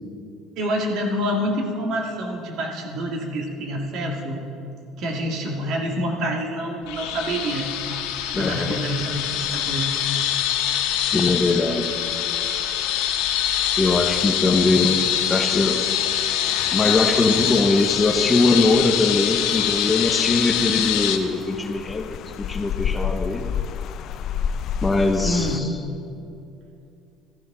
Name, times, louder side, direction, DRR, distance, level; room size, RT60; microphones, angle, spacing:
voice 1, 0.6-4.4 5.0-8.0 8.4-9.9 25.2-25.6, equal, 60° right, 1 dB, 1.8 m, -27 dB
sound 1, 6.9-21.2, left 10 dB, 85° left, 0.8 m, -24 dB
voice 2, 8.3-8.8 11.0-11.9 13.8-15.0 15.3-15.8 16.7-23.5 24.8-25.7, left 3 dB, 15° left, 5 dB, 0.6 m, -21 dB
Rain, 16.5-25.6, left 8 dB, 50° left, 0.3 m, -32 dB
13.5 x 12.0 x 3.7 m, 2.7 s
cardioid pair, 140°, 0 cm